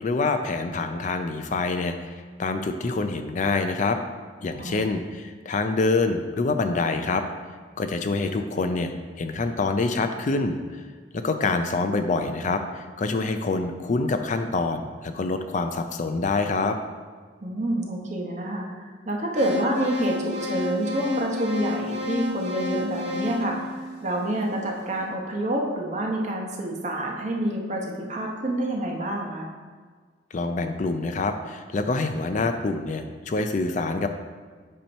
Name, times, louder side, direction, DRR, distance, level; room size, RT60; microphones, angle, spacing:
voice 1, 0.0-4.0 4.4-7.2 7.8-8.9 9.2-10.6 11.1-16.8 30.3-34.1, left 3 dB, 45° left, 7 dB, 0.4 m, -26 dB
voice 2, 4.6-5.0 17.4-29.5, right 1 dB, 40° right, 0 dB, 1.0 m, -28 dB
sound 1, 19.3-24.5, left 3 dB, 75° right, 1.7 m, -31 dB
8.5 x 2.9 x 5.3 m, 1.5 s
head